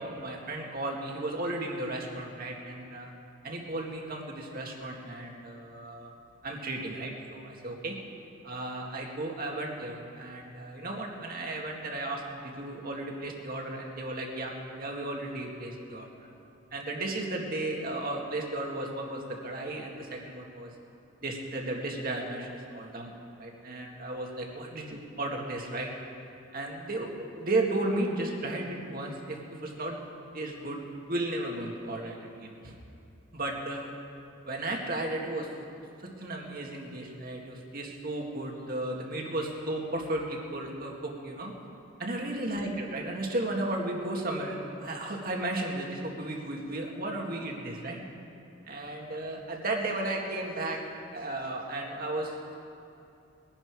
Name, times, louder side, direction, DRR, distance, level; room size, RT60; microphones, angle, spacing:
voice 1, 0.0-3.1 3.4-6.1 6.4-8.0 8.4-16.1 16.7-20.7 21.2-23.1 23.4-25.9 26.5-27.1 27.4-30.0 30.3-30.8 31.1-32.8 33.3-33.9 34.5-35.5 36.0-41.5 42.0-48.0 48.7-50.8 51.1-52.6, right 2 dB, 45° right, 0 dB, 2.0 m, -34 dB
21.5 x 11.0 x 4.8 m, 2.6 s
head